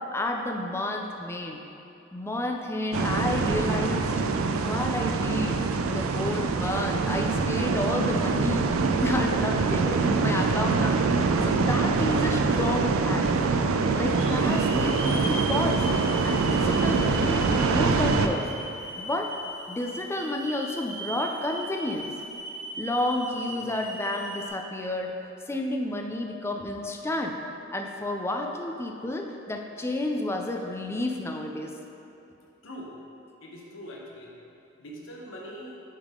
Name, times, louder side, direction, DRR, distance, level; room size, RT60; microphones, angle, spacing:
voice 1, 0.1-1.6 2.1-4.1 4.7-8.7 9.0-13.3 13.9-15.8 16.2-18.5 19.0-19.3 19.7-22.1 22.8-25.1 25.5-27.4 27.7-31.7, left 1 dB, 10° left, 2 dB, 0.4 m, -30 dB
sound 1, 2.9-18.3, right 4 dB, 90° right, 0.4 m, -24 dB
Hiss / Alarm, 13.0-13.1 14.1-24.5, right 1 dB, 20° right, 1.2 m, -38 dB
voice 2, 33.4-34.3 34.8-35.8, equal, 70° left, -2 dB, 1.0 m, -42 dB
9.6 x 3.6 x 3.7 m, 2.8 s
head